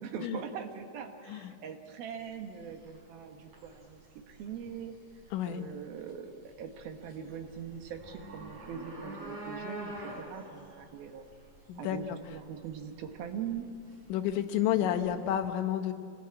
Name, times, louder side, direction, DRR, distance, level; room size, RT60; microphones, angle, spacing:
voice 1, 0.0-4.0 4.3-4.9 5.5-9.9 10.2-11.3 11.8-13.7 14.8-14.9, right 7 dB, 65° right, 5 dB, 3.1 m, -41 dB
sound 1, 2.2-15.3, right 1 dB, 40° right, 7.8 m, -48 dB
voice 2, 5.3-5.7 11.7-12.2 14.1-15.9, left 11 dB, 85° left, 7 dB, 3.5 m, -30 dB
27.5 x 19.5 x 8.9 m, 2.3 s
omnidirectional pair, 5.2 m